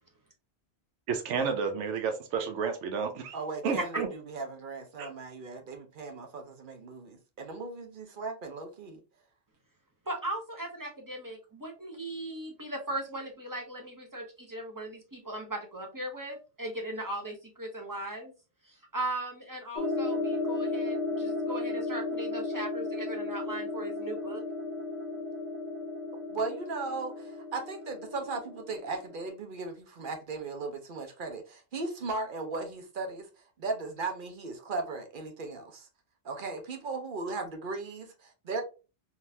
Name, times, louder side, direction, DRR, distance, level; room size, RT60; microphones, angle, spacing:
voice 1, 1.1-3.3 3.6-4.1 5.0-5.1, right 6 dB, 85° right, 0.9 m, -31 dB
voice 2, 3.3-9.0 26.3-33.3 33.6-35.9 36.2-38.6, right 3 dB, 50° right, 0.8 m, -37 dB
voice 3, 10.1-18.3 18.7-24.4, right 1 dB, 20° right, 0.6 m, -38 dB
sound 1, 19.8-29.3, left 2 dB, 45° left, 0.8 m, -34 dB
3.8 x 2.4 x 2.6 m
omnidirectional pair, 1.2 m